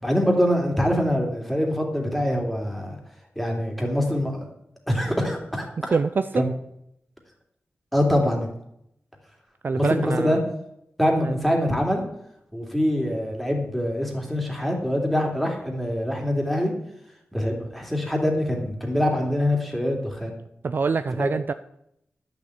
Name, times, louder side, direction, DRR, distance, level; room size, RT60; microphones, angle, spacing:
voice 1, 0.0-3.0 3.4-4.5 4.9-6.0 6.3-6.5 7.9-8.5 9.8-10.4 11.0-12.0 12.5-16.7 17.3-20.3 21.2-21.3, equal, ahead, 1 dB, 2.8 m, -24 dB
voice 2, 5.9-6.5 9.6-10.4 11.2-11.3 20.6-21.5, right 4 dB, 50° right, 11 dB, 0.4 m, -25 dB
11.5 x 7.0 x 8.0 m, 0.78 s
wide cardioid pair, 135°, 4 cm